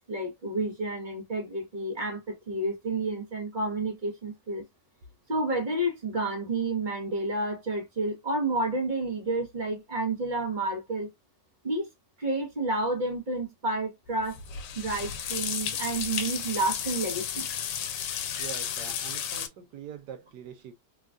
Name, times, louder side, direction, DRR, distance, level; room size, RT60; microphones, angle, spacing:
voice 1, 0.0-4.6 5.3-11.1 11.6-11.9 12.2-14.4 14.7-17.5, right 2 dB, 35° right, 0.9 m, -30 dB
sound 1, 14.1-19.5, left 8 dB, 85° left, 1.2 m, -33 dB
voice 2, 18.4-20.7, right 8 dB, 75° right, 1.4 m, -43 dB
3.3 x 2.3 x 2.4 m
omnidirectional pair, 1.8 m